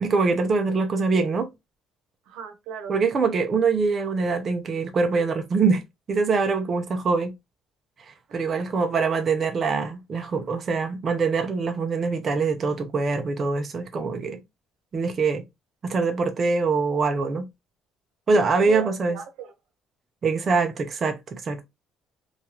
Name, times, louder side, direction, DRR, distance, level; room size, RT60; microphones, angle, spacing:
voice 1, 0.0-1.5 2.9-5.8 6.1-7.3 8.3-14.4 14.9-15.4 15.8-17.5 18.3-19.2 20.2-21.6, right 4 dB, 25° right, 0.4 m, -24 dB
voice 2, 2.3-3.1 8.5-8.7 18.6-19.5, right 6 dB, 85° right, 0.7 m, -36 dB
3.0 x 2.3 x 2.8 m
cardioid pair, 180°, 0 cm